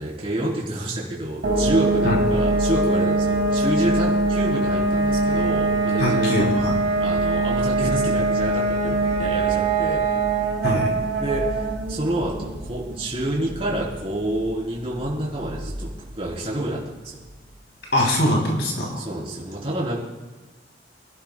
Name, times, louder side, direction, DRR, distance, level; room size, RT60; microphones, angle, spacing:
voice 1, 0.0-6.5 7.0-10.0 11.2-16.8 17.1-17.2 19.0-20.0, right 1 dB, 35° right, -5 dB, 3.5 m, -28 dB
sound 1, 1.4-16.0, right 2 dB, 70° right, 2.3 m, -23 dB
voice 2, 6.0-6.7 10.6-10.9 17.9-19.0, left 1 dB, 65° left, -1 dB, 3.0 m, -22 dB
26.5 x 12.0 x 2.3 m, 1.2 s
head